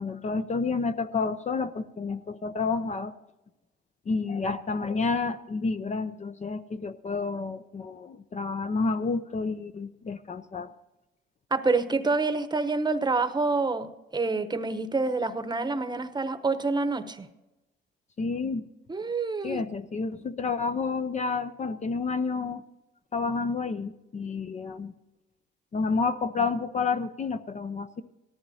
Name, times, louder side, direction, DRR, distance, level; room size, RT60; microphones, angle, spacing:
voice 1, 0.0-3.1 4.1-10.7 18.2-18.7 19.4-22.6 23.1-24.9 25.7-28.0, left 4 dB, 35° left, 11 dB, 0.6 m, -30 dB
voice 2, 11.5-17.3 18.9-19.6, right 3 dB, 20° right, 10 dB, 0.9 m, -27 dB
18.0 x 13.5 x 2.8 m, 1.0 s
cardioid pair, 90°, 20 cm